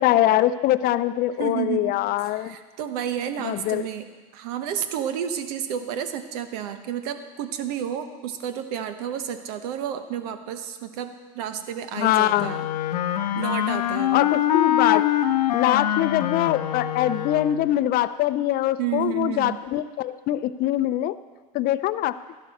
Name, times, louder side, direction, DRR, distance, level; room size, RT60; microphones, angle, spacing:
voice 1, 0.0-2.6 3.4-3.9 11.9-12.5 14.1-21.2 21.5-22.2, left 13 dB, 50° left, 14 dB, 0.6 m, -23 dB
voice 2, 1.4-2.0 2.4-4.1 4.3-12.7 13.3-14.3 18.8-19.6, right 9 dB, 70° right, 9 dB, 1.1 m, -31 dB
Wind instrument woodwind instrument, 12.4-17.7, left 11 dB, 80° left, 0.7 m, -24 dB
13.0 x 11.5 x 4.3 m, 1.4 s
hypercardioid pair, 90°, 20 cm